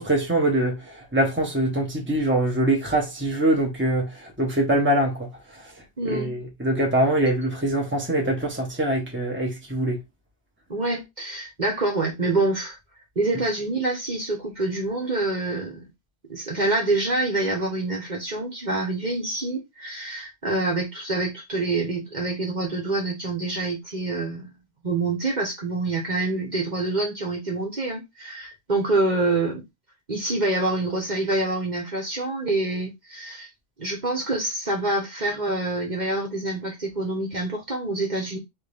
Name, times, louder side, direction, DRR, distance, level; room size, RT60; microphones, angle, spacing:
voice 1, 0.0-5.7 6.0-10.0, right 1 dB, 10° right, 1.3 m, -24 dB
voice 2, 6.0-6.3 10.7-12.8 13.1-15.9 16.3-24.5 24.8-29.6 30.1-33.5 33.8-38.4, right 2 dB, 40° right, 1.4 m, -26 dB
3.9 x 3.6 x 3.5 m
omnidirectional pair, 1.1 m